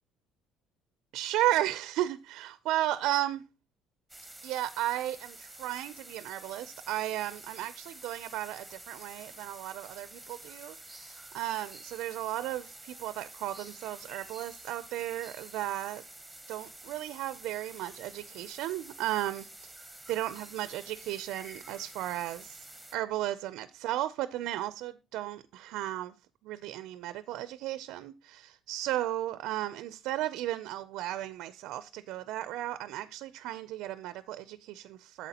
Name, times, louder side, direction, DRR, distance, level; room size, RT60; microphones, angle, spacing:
voice 1, 1.1-3.4 4.4-16.0 16.5-19.7 20.1-22.6 22.9-26.1 26.4-35.3, right 14 dB, 75° right, 0.4 m, -34 dB
sound 1, 4.1-22.9, right 2 dB, 5° right, 1.0 m, -49 dB
9.1 x 7.2 x 2.8 m
cardioid pair, 120°, 0 cm